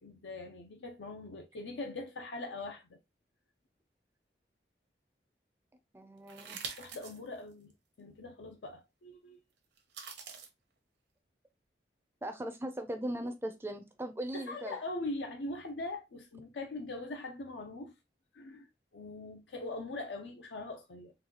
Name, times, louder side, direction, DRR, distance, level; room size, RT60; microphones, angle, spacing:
voice 1, 0.0-3.0 6.8-7.7 8.0-9.4 14.3-17.9 18.3-18.7 18.9-21.1, left 2 dB, 90° left, 0.6 m, -41 dB
voice 2, 5.9-6.6 12.2-14.8, right 1 dB, 15° right, 0.4 m, -39 dB
sound 1, 6.3-7.2 7.7-7.8 9.8-10.5, right 6 dB, 80° right, 0.8 m, -44 dB
3.9 x 2.3 x 2.9 m
head